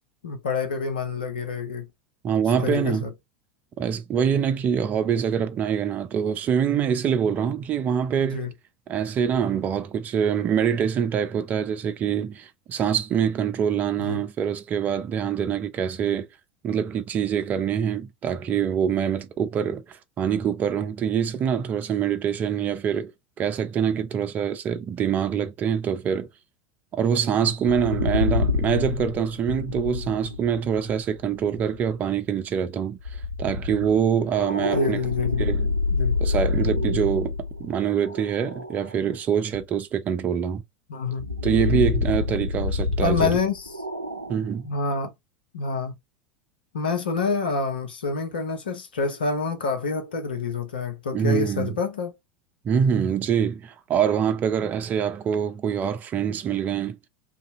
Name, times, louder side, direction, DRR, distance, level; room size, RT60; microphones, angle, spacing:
voice 1, 0.2-1.9 2.6-3.1 8.3-8.5 14.0-14.3 34.7-35.5 35.9-36.2 40.9-41.2 43.0-43.8 44.6-45.1 45.5-45.9 46.7-52.1, left 4 dB, 75° left, 0.8 m, -27 dB
voice 2, 2.2-3.1 3.8-8.4 8.9-16.3 16.6-23.1 23.4-26.3 26.9-33.0 33.4-35.0 35.4-35.7 36.2-37.3 37.6-40.6 41.4-43.4 44.3-44.7 51.1-51.8 52.6-57.0, right 8 dB, 35° right, 0.7 m, -25 dB
sound 1, 27.6-31.9 33.0-39.0 39.5-39.6 41.2-44.6, left 4 dB, 90° right, 0.5 m, -27 dB
2.7 x 2.6 x 3.7 m
figure-of-eight pair, 80°, 5 cm